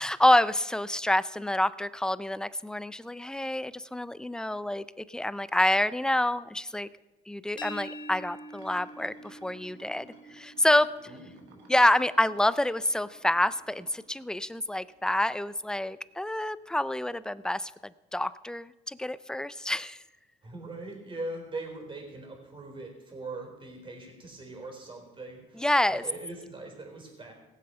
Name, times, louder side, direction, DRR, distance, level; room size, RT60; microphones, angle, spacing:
voice 1, 0.0-6.9 7.3-10.9 11.7-20.0 25.6-26.0, left 1 dB, 5° left, 17 dB, 0.4 m, -27 dB
sound 1, 7.6-13.3, equal, 25° left, 1.0 m, -47 dB
sound 2, 8.5-15.0 15.5-15.7 19.1-19.2 20.9-21.0, right 6 dB, 80° right, 1.7 m, -58 dB
voice 2, 11.1-11.7 20.4-27.3, right 2 dB, 30° right, 2 dB, 4.1 m, -41 dB
17.5 x 7.7 x 5.7 m, 1.1 s
supercardioid pair, 95°, 18 cm